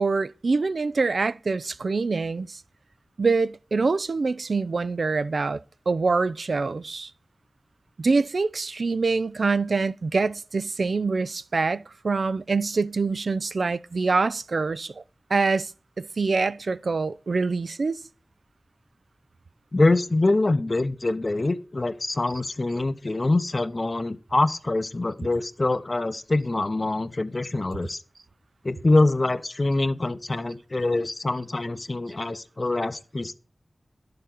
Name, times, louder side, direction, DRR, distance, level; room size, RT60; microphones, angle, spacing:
voice 1, 0.0-2.6 3.2-5.6 5.9-7.1 8.0-15.0 15.3-15.7 16.0-18.0, right 4 dB, 75° right, 0.4 m, -25 dB
voice 2, 19.7-28.0 28.6-33.3, left 2 dB, 45° left, 0.7 m, -24 dB
11.0 x 6.8 x 3.9 m
wide cardioid pair, 55°, 0 cm